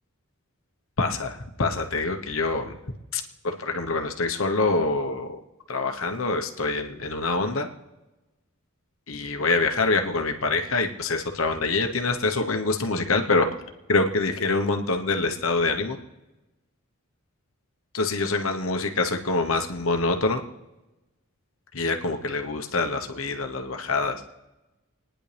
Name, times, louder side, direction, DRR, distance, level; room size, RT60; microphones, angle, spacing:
voice 1, 1.0-2.8 3.1-5.4 5.7-7.7 9.1-13.5 13.9-16.0 17.9-20.4 21.7-24.2, left 3 dB, 70° left, 5 dB, 1.2 m, -25 dB
29.0 x 10.0 x 3.4 m, 1.1 s
head